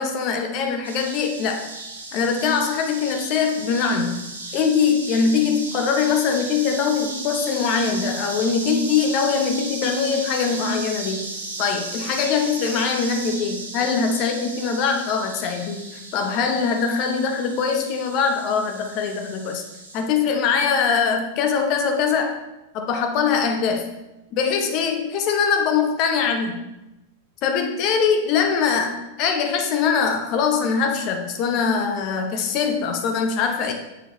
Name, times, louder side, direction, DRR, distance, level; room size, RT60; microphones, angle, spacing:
voice 1, 0.0-1.7 2.1-4.2 4.5-19.6 19.9-22.4 22.7-23.9 24.4-26.6 27.4-33.7, left 6 dB, 40° left, 4 dB, 1.0 m, -22 dB
sound 1, 0.8-20.0, right 2 dB, 75° right, 1.1 m, -35 dB
7.2 x 6.2 x 3.0 m, 0.95 s
figure-of-eight pair, 90°, 0 cm